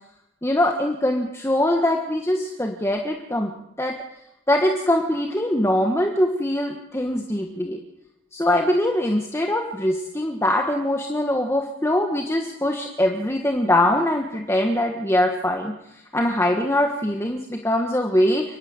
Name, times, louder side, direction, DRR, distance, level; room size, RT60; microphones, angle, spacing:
voice 1, 0.4-3.5 3.8-3.9 4.5-7.8 8.3-15.7 16.1-18.6, left 1 dB, 15° left, 2 dB, 1.5 m, -22 dB
29.5 x 10.0 x 9.7 m, 0.88 s
head